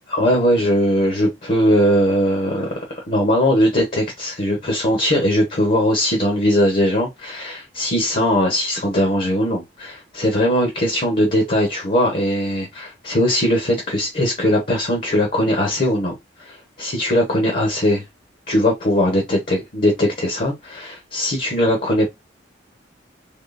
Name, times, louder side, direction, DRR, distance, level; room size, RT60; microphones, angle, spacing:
voice 1, 0.1-16.1 16.4-18.0 18.5-22.1, equal, 45° left, 1.1 m, -20 dB
3.7 x 3.1 x 2.5 m
head